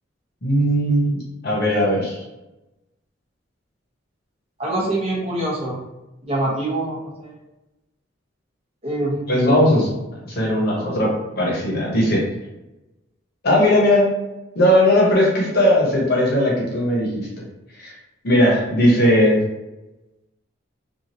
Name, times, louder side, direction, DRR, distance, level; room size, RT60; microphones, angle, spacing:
voice 1, 0.4-2.2 9.3-9.9 10.2-11.1 11.4-12.2 13.4-14.1 14.5-17.3 17.8-17.9 18.2-19.4, equal, 55° left, -4 dB, 1.0 m, -18 dB
voice 2, 4.6-5.8 6.2-7.3 8.8-9.5, right 1 dB, 30° right, -7 dB, 1.0 m, -25 dB
2.9 x 2.5 x 2.7 m, 0.98 s
head